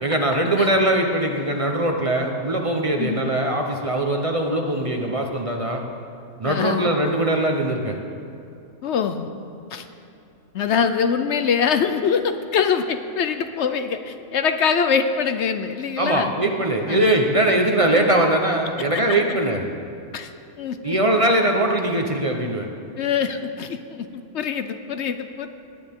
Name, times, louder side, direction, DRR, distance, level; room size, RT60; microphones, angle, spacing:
voice 1, 0.0-5.8 6.4-8.0 16.0-19.6 20.8-22.7, right 1 dB, 30° right, 2 dB, 0.8 m, -21 dB
voice 2, 6.4-6.9 8.8-9.3 9.7-9.9 10.5-16.3 16.9-17.1 20.1-20.3 20.6-20.9 23.0-25.5, left 6 dB, 65° left, 8 dB, 0.8 m, -24 dB
18.0 x 10.0 x 3.6 m, 2.6 s
omnidirectional pair, 1.5 m